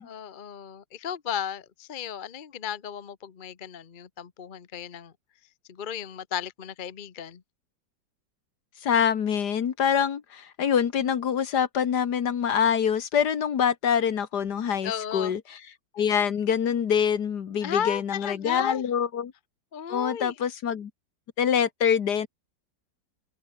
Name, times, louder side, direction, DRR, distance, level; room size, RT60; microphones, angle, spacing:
voice 1, 0.0-5.1 5.7-7.4 14.8-15.4 17.6-18.8 19.7-20.3, left 8 dB, 35° left, 0.9 m, -34 dB
voice 2, 8.8-15.6 15.9-19.3 19.9-20.9 21.4-22.3, left 8 dB, 65° left, 1.9 m, -25 dB
omnidirectional pair, 2.0 m